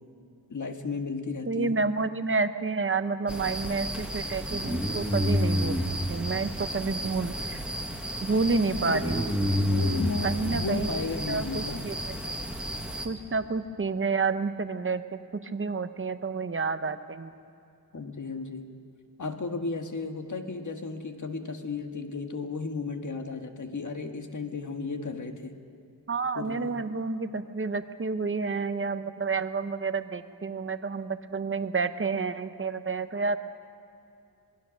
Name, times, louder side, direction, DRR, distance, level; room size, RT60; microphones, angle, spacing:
voice 1, 0.5-1.8 8.8-9.0 9.6-11.9 17.9-18.6 19.2-25.5 26.3-26.7, left 4 dB, 50° left, 5 dB, 1.7 m, -34 dB
voice 2, 1.5-5.8 6.1-7.6 8.2-9.3 10.2-10.9 11.3-12.3 13.0-17.3 26.1-33.4, right 4 dB, 30° right, 10 dB, 0.9 m, -29 dB
sound 1, 3.3-13.1, equal, 5° right, 1.9 m, -30 dB
26.5 x 20.0 x 6.4 m, 2.7 s
wide cardioid pair, 120°, 39 cm